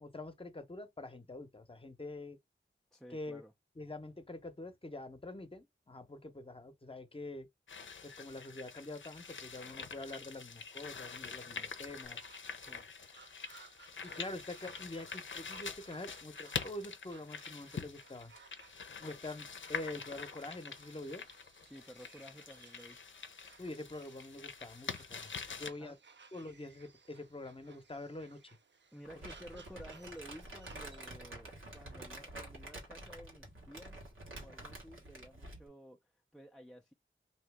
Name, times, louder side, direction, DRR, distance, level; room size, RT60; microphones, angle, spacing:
voice 1, 0.0-2.4 3.1-3.4 3.8-7.5 8.0-12.2 14.0-18.3 19.0-21.2 23.6-26.0 26.3-28.4, left 2 dB, 25° left, 0.8 m, -45 dB
voice 2, 2.9-3.5 12.6-12.9 21.6-23.0 25.8-26.0 28.9-34.0 34.3-36.9, equal, 5° left, 0.4 m, -53 dB
sound 1, 7.7-25.7, left 5 dB, 70° left, 0.6 m, -45 dB
sound 2, 12.0-31.1, right 5 dB, 65° right, 0.6 m, -61 dB
Crumpling crinkling, 29.0-35.7, right 1 dB, 90° right, 1.4 m, -49 dB
2.8 x 2.8 x 3.3 m
wide cardioid pair, 55°, 20 cm